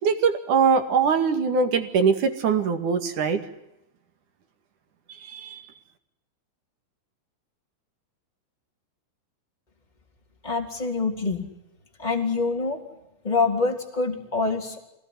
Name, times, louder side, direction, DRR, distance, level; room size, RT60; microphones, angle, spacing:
voice 1, 0.0-3.4 5.3-5.6, right 5 dB, 50° right, 7 dB, 2.8 m, -22 dB
voice 2, 10.4-11.4 12.0-12.8 13.2-14.8, left 4 dB, 10° left, 2 dB, 2.9 m, -25 dB
27.5 x 18.5 x 9.8 m, 0.90 s
omnidirectional pair, 5.9 m